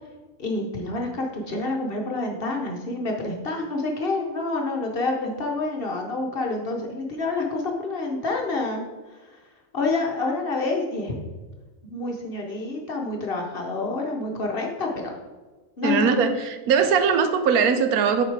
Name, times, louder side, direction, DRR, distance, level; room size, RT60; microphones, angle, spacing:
voice 1, 0.4-8.8 9.1-9.4 9.7-11.1 11.9-15.2 15.8-16.1, left 3 dB, 45° left, 1 dB, 1.0 m, -28 dB
voice 2, 15.8-18.3, right 6 dB, 85° right, 8 dB, 1.1 m, -20 dB
7.6 x 4.1 x 4.7 m, 1.3 s
omnidirectional pair, 1.5 m